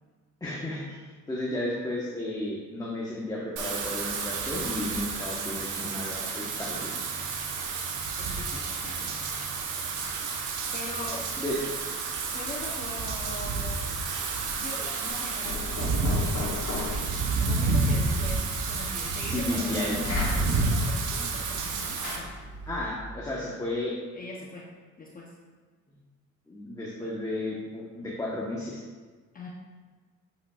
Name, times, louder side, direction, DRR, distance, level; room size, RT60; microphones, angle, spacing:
voice 1, 0.4-1.0 1.3-6.9 11.4-11.6 19.2-20.0 22.7-24.0 26.5-28.8, left 1 dB, 10° left, -6 dB, 1.1 m, -33 dB
Wind / Rain, 3.6-22.2, right 4 dB, 85° right, 0.9 m, -30 dB
voice 2, 8.2-9.3 10.7-11.3 12.3-13.9 14.6-22.4 24.1-24.7 25.0-25.4 27.0-27.1 29.3-29.5, left 2 dB, 30° left, -2 dB, 0.7 m, -41 dB
Knock, 15.1-23.0, left 2 dB, 80° left, 1.5 m, -36 dB
8.3 x 5.3 x 2.4 m, 1.5 s
cardioid pair, 90°, 30 cm